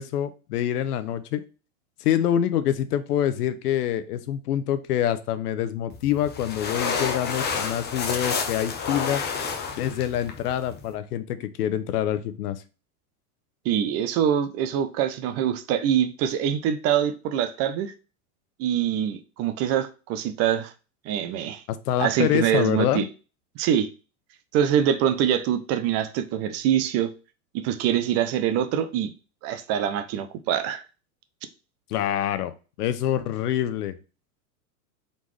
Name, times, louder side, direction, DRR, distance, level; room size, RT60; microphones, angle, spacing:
voice 1, 0.0-1.4 2.0-9.2 9.8-12.6 21.7-23.1 31.9-34.0, left 11 dB, 85° left, 0.7 m, -26 dB
sound 1, 5.9-10.9, left 5 dB, 25° left, 0.8 m, -30 dB
voice 2, 13.6-17.9 18.6-20.7 21.1-21.6 22.0-23.1 23.6-23.9 24.5-27.1 27.5-29.1 29.4-30.8, right 9 dB, 35° right, 0.5 m, -24 dB
4.0 x 3.6 x 3.1 m
supercardioid pair, 130°, 45 cm